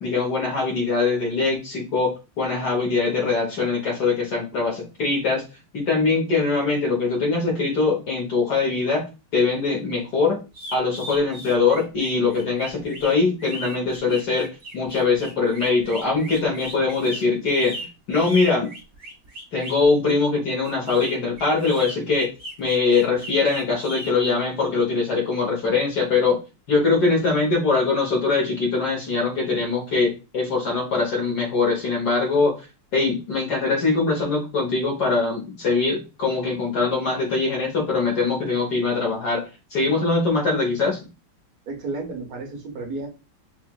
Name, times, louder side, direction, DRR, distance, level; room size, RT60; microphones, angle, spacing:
voice 1, 0.0-5.4 5.7-9.0 9.3-10.4 10.7-17.8 18.1-18.7 19.5-22.3 22.6-26.4 26.7-32.6 32.9-39.4 39.7-41.0, left 4 dB, 60° left, -1 dB, 1.5 m, -22 dB
sound 1, 10.5-19.8 20.6-24.1, right 1 dB, 35° right, 1.6 m, -37 dB
voice 2, 41.7-43.1, right 3 dB, 55° right, 2 dB, 1.2 m, -32 dB
5.7 x 2.4 x 2.3 m, 0.29 s
omnidirectional pair, 2.1 m